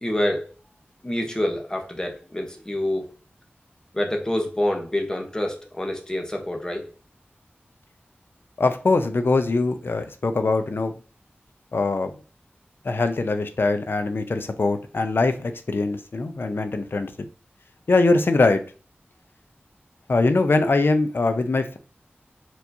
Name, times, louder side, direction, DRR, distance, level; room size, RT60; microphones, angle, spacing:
voice 1, 0.0-0.5 1.0-3.1 3.9-6.8, left 1 dB, 15° left, 2 dB, 0.9 m, -27 dB
voice 2, 8.6-10.9 11.7-12.1 12.8-17.1 17.9-18.6 20.1-21.8, left 3 dB, 65° left, 8 dB, 0.5 m, -22 dB
4.4 x 2.9 x 2.6 m, 0.37 s
wide cardioid pair, 75°, 4 cm